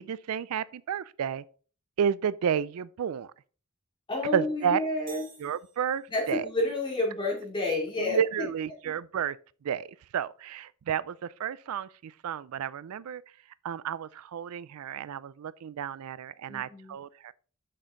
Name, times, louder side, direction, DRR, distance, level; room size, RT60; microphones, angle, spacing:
voice 1, 0.0-1.4 2.0-3.3 4.3-4.8 5.1-6.5 8.0-9.4 9.6-9.9 10.1-13.2 13.6-17.3, right 8 dB, 85° right, 0.4 m, -31 dB
voice 2, 4.1-5.3 6.1-8.5 16.5-16.9, left 2 dB, 20° left, 2.7 m, -30 dB
sound 1, 5.1-6.5, right 4 dB, 25° right, 1.9 m, -53 dB
6.5 x 6.2 x 3.7 m
head